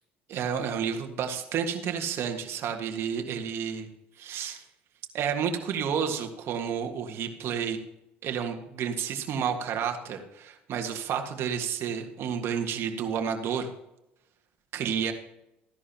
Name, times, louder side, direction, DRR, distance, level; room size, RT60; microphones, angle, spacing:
voice 1, 0.3-3.9 4.2-4.6 5.1-7.8 8.2-13.7 14.7-15.1, right 7 dB, 55° right, 3 dB, 1.8 m, -30 dB
15.0 x 11.0 x 3.0 m, 0.90 s
hypercardioid pair, 75°, 5 cm